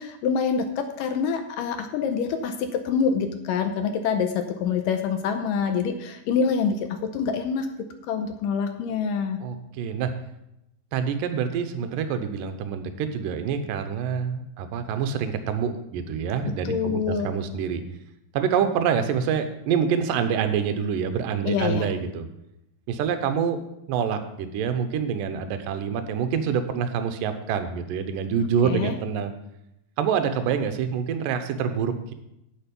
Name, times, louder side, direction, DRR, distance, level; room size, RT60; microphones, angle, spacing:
voice 1, 0.0-7.7 8.1-9.4 16.4-17.3 21.5-21.9 28.6-29.0, left 6 dB, 80° left, 7 dB, 2.2 m, -26 dB
voice 2, 9.4-10.1 10.9-17.8 18.3-22.3 22.9-23.6 23.9-29.3 30.0-32.1, right 7 dB, 75° right, 8 dB, 2.3 m, -26 dB
9.0 x 8.8 x 5.3 m, 0.85 s
omnidirectional pair, 4.3 m